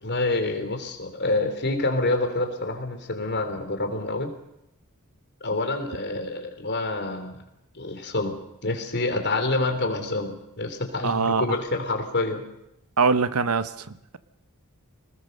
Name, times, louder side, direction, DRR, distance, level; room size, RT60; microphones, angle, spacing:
voice 1, 0.0-4.3 5.4-7.3 7.8-8.4 8.6-12.4, left 2 dB, 50° left, 6 dB, 3.6 m, -27 dB
voice 2, 11.0-11.4 13.0-13.9, right 4 dB, 80° right, 13 dB, 1.0 m, -22 dB
26.0 x 19.5 x 6.7 m, 0.84 s
head